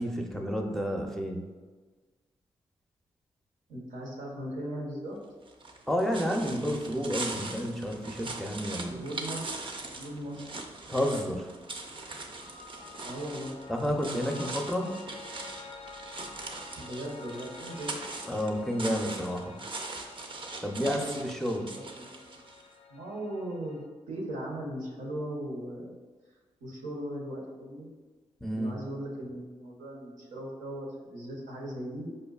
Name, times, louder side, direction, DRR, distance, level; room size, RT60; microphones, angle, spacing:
voice 1, 0.0-1.5 5.9-9.0 10.9-11.5 13.7-15.0 18.3-19.6 20.6-21.7 28.4-28.8, equal, 5° left, 1 dB, 0.5 m, -30 dB
voice 2, 3.7-5.2 8.9-9.5 10.0-10.5 13.0-13.5 16.7-17.9 20.8-21.1 21.5-22.3 22.9-23.8 24.1-26.0 26.6-27.9 28.5-32.1, right 1 dB, 85° right, -2 dB, 0.8 m, -38 dB
sound 1, 5.5-22.7, right 3 dB, 45° right, 0.5 m, -41 dB
Piano, 11.5-23.9, left 4 dB, 55° left, 0.4 m, -49 dB
5.0 x 2.2 x 2.3 m, 1.4 s
supercardioid pair, 45°, 13 cm